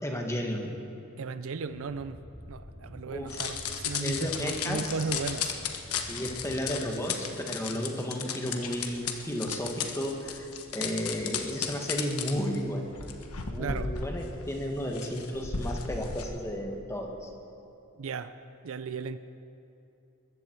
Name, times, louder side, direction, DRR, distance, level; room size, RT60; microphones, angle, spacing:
voice 1, 0.0-0.7 3.1-3.5 4.0-5.0 6.1-10.5 10.7-12.8 13.5-17.3, equal, 15° left, 2 dB, 1.6 m, -33 dB
voice 2, 1.2-2.2 2.5-5.6 13.6-13.9 18.0-18.3 18.6-19.2, right 4 dB, 65° right, 12 dB, 0.5 m, -35 dB
sound 1, 1.6-6.8, equal, 50° left, 4.3 m, -48 dB
sound 2, 3.3-16.2, left 7 dB, 85° left, 1.3 m, -35 dB
20.5 x 14.5 x 4.6 m, 2.8 s
head